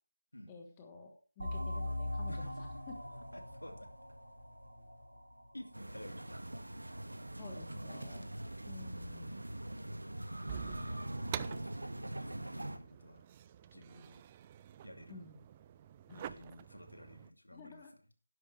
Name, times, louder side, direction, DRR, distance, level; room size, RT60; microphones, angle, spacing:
voice 1, 0.5-2.9 7.4-8.4 8.7-9.4 15.1-15.4 16.1-16.3 17.5-17.9, left 3 dB, 15° left, 3 dB, 1.4 m, -52 dB
sound 1, 1.4-6.7, left 1 dB, 85° right, 4.9 m, -42 dB
voice 2, 2.3-2.7 3.3-3.9 5.5-7.0 10.4-11.1 12.1-13.2 13.7-14.2 14.8-15.3 16.1-17.9, left 1 dB, 75° left, 5 dB, 2.5 m, -53 dB
sound 2, 5.7-12.8, right 1 dB, 70° right, 1.7 m, -42 dB
sound 3, 10.5-17.3, right 10 dB, 20° right, 0.4 m, -48 dB
11.5 x 10.5 x 3.4 m, 0.35 s
figure-of-eight pair, 155°, 0 cm